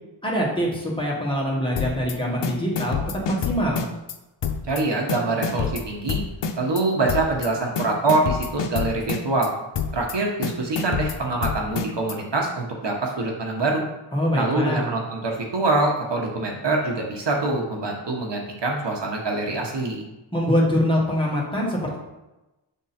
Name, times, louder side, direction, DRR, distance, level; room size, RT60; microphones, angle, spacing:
voice 1, 0.2-3.0 3.3-3.8 14.1-14.8 20.3-22.0, equal, 10° left, -4 dB, 1.6 m, -24 dB
sound 1, 1.8-2.1 2.4-4.1 4.4-4.8 5.1-6.8 7.1-7.5 7.8-9.5 9.7-10.1 10.4-12.1, left 6 dB, 65° left, 0.7 m, -27 dB
voice 2, 4.7-6.2 6.6-9.5 9.9-13.9 14.3-20.0, right 2 dB, 60° right, 0 dB, 1.2 m, -24 dB
7.2 x 3.8 x 4.3 m, 1.0 s
wide cardioid pair, 115°, 46 cm